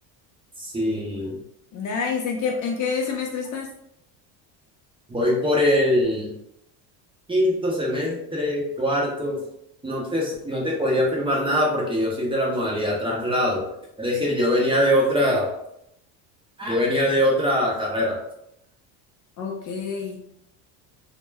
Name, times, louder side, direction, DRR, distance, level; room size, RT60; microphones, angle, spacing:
voice 1, 0.6-1.4 5.1-6.3 7.3-9.4 9.8-13.7 14.0-15.5 16.6-18.2, left 1 dB, 10° right, -3 dB, 0.6 m, -22 dB
voice 2, 1.7-3.7 19.4-20.2, left 5 dB, 45° left, 1 dB, 0.4 m, -27 dB
2.1 x 2.1 x 3.2 m, 0.77 s
cardioid pair, 115°, 43 cm